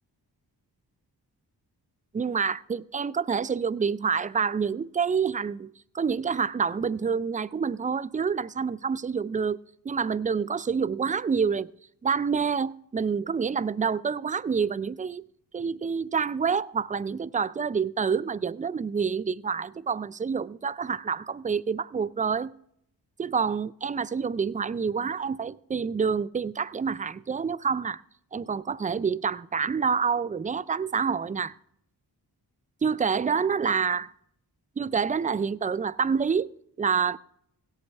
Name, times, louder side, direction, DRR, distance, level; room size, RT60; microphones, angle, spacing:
voice 1, 2.1-9.6 9.8-11.7 12.0-15.3 15.5-22.5 23.2-28.0 28.3-31.5 32.8-34.1 34.8-36.5 36.8-37.2, right 6 dB, 20° right, 0.3 m, -27 dB
17.0 x 8.2 x 3.3 m
cardioid pair, 50°, 42 cm